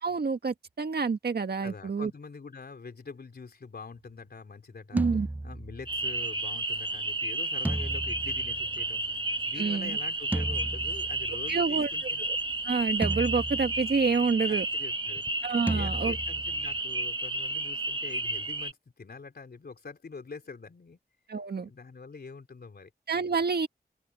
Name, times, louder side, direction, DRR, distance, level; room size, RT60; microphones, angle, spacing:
voice 1, 0.0-2.1 4.9-5.3 9.6-10.0 11.5-11.9 12.6-14.6 15.4-16.1 21.3-21.7 23.1-23.7, right 5 dB, 80° right, 1.7 m, -28 dB
voice 2, 1.6-5.0 5.4-9.0 9.5-12.2 14.5-21.0 21.6-22.9, left 4 dB, 80° left, 3.8 m, -45 dB
sound 1, 5.0-6.2 7.6-9.2 10.3-11.5 13.0-14.2 15.7-16.8, right 2 dB, 10° right, 0.3 m, -34 dB
sound 2, 5.9-18.7, right 2 dB, 30° right, 1.7 m, -32 dB
open air
wide cardioid pair, 70°, 16 cm